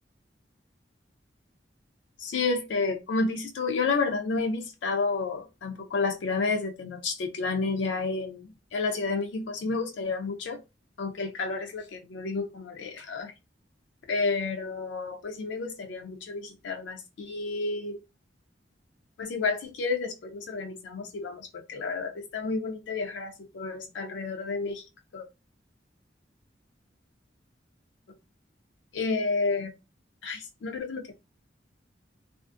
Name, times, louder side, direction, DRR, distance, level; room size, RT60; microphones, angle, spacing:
voice 1, 2.2-10.6 11.0-13.3 14.1-18.0 19.2-24.8 25.1-25.3 28.9-29.7 30.2-31.1, left 4 dB, 75° left, 0.4 m, -30 dB
2.4 x 2.4 x 2.4 m
head